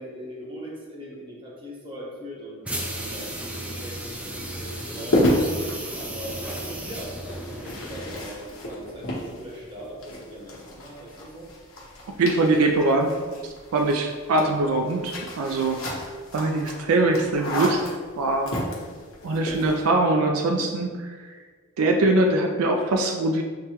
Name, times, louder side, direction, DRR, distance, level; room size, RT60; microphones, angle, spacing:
voice 1, 0.0-5.3 5.9-11.5, equal, 25° right, -4 dB, 0.9 m, -40 dB
sound 1, 2.6-8.3, right 1 dB, 5° right, 0.3 m, -34 dB
sound 2, 4.2-19.9, left 1 dB, 75° left, 1.0 m, -32 dB
voice 2, 12.2-13.1 13.4-16.0 16.3-17.9 18.2-18.6 19.2-21.3 21.8-23.4, right 2 dB, 80° right, 3 dB, 0.4 m, -22 dB
6.5 x 2.2 x 2.9 m, 1.5 s
head